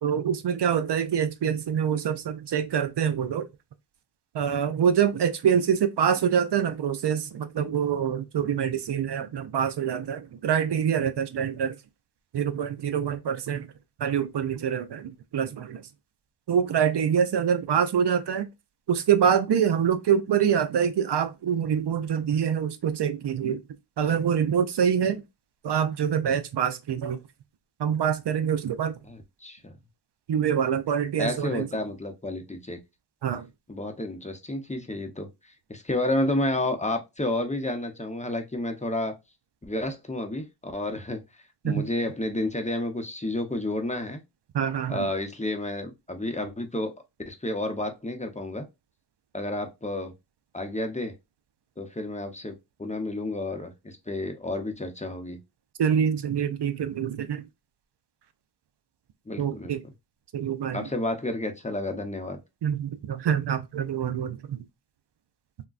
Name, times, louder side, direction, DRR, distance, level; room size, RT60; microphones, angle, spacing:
voice 1, 0.0-3.5 4.3-11.8 12.3-13.7 14.0-15.8 16.5-18.5 18.9-23.6 24.0-25.2 25.6-27.2 27.8-29.0 30.3-31.7 33.2-33.5 41.6-41.8 44.5-45.1 55.8-57.4 59.4-59.8 60.3-60.9 62.6-64.6, right 8 dB, 70° right, 0.5 m, -25 dB
voice 2, 29.1-29.7 31.2-32.8 33.7-39.2 39.6-41.2 41.6-44.2 44.9-46.9 47.3-48.6 49.3-50.1 50.5-51.2 51.8-55.4 59.3-59.7 60.7-62.4, left 1 dB, 15° left, 0.7 m, -31 dB
3.6 x 2.2 x 2.3 m
cardioid pair, 45°, 43 cm